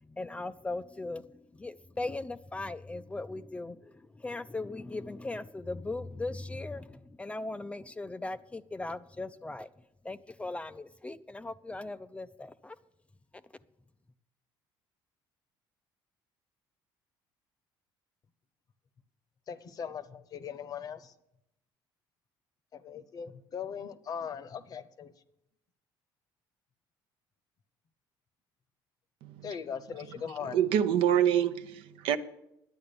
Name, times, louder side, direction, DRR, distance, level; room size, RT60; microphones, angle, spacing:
voice 1, 0.0-9.7 10.0-12.8, left 2 dB, 15° left, 12 dB, 0.3 m, -39 dB
voice 2, 19.5-21.1 22.7-25.1 29.4-30.6, left 7 dB, 40° left, 13 dB, 0.8 m, -39 dB
voice 3, 30.4-32.2, right 9 dB, 80° right, 8 dB, 0.7 m, -26 dB
10.5 x 8.6 x 6.8 m, 0.85 s
cardioid pair, 115°, 9 cm